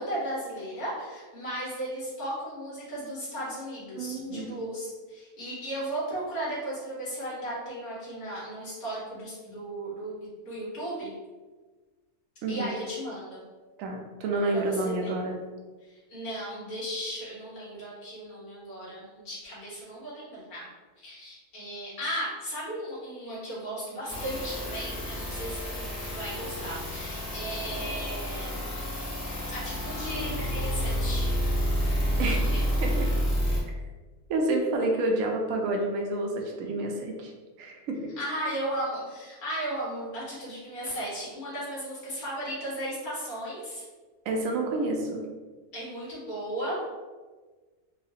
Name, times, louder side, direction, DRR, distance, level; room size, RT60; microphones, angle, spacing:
voice 1, 0.0-10.1 10.4-11.1 12.5-13.4 14.5-15.1 15.8-20.7 21.0-28.6 29.5-31.4 32.2-32.9 38.2-43.8 45.7-46.8, right 1 dB, 75° left, -8 dB, 2.0 m, -36 dB
voice 2, 3.9-4.5 12.4-12.7 13.8-15.4 32.2-32.4 32.8-33.1 34.3-37.3 37.6-38.1 44.2-45.2, right 2 dB, 70° right, 1 dB, 0.9 m, -29 dB
sound 1, 24.1-33.6, equal, 30° left, 0.8 m, -29 dB
4.0 x 2.4 x 2.7 m, 1.3 s
omnidirectional pair, 1.6 m